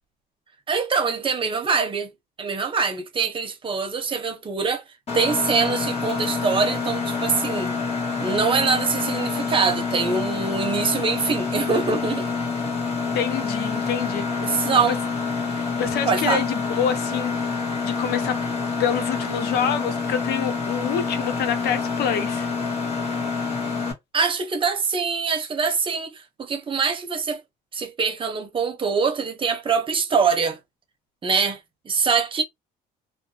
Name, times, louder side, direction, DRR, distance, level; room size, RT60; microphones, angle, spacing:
voice 1, 0.7-2.1 2.4-4.8 5.1-7.7 8.2-12.3 14.4-15.0 16.1-16.4 24.1-27.4 27.7-30.6 31.2-31.6 31.8-32.4, right 5 dB, 30° right, 0.8 m, -24 dB
Mechanisms, 5.1-23.9, left 4 dB, 40° left, 1.6 m, -27 dB
voice 2, 13.1-14.4 14.9-15.0 15.8-17.5 17.8-18.4 18.8-22.5, left 8 dB, 70° left, 0.6 m, -26 dB
2.6 x 2.2 x 2.7 m
cardioid pair, 110°, 17 cm